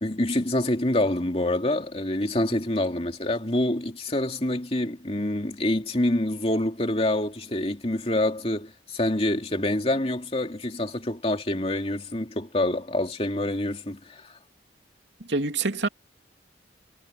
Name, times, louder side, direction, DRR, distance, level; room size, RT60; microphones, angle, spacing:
voice 1, 0.0-14.3, left 1 dB, 35° left, 2.7 m, -26 dB
voice 2, 15.2-15.9, right 3 dB, 80° right, 2.8 m, -26 dB
head